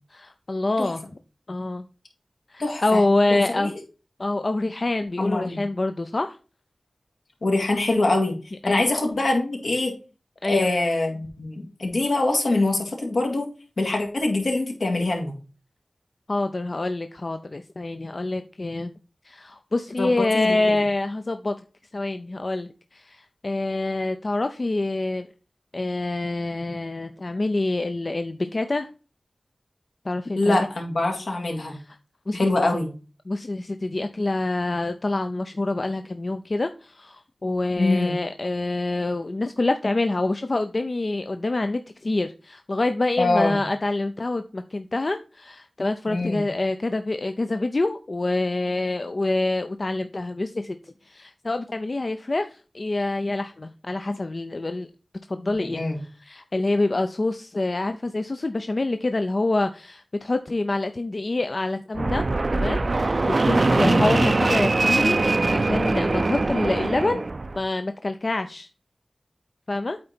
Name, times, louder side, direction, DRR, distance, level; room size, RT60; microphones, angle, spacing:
voice 1, 0.1-1.0 1.5-1.9 2.5-3.7 4.2-6.4 8.6-8.8 10.4-10.7 16.3-18.9 19.2-21.5 21.9-25.3 25.7-28.9 30.0-30.7 31.7-32.0 32.3-32.4 33.3-54.9 55.3-62.2 62.5-62.8 63.1-63.2 63.4-65.2 65.5-67.3 67.6-68.7 69.7-70.0, left 2 dB, 50° left, 8 dB, 0.5 m, -26 dB
voice 2, 2.6-3.0 3.3-3.7 5.2-5.7 7.4-8.3 8.7-9.9 10.5-13.5 13.8-15.3 20.0-20.6 30.4-31.8 32.3-32.9 37.8-38.1 43.2-43.6 46.1-46.4 55.4-56.0 63.8-64.1, left 2 dB, 85° left, 1 dB, 2.2 m, -24 dB
Fixed-wing aircraft airplane, 61.9-67.6, right 2 dB, 55° right, 0.4 m, -22 dB
8.6 x 4.0 x 4.3 m, 0.34 s
wide cardioid pair, 50°, 0 cm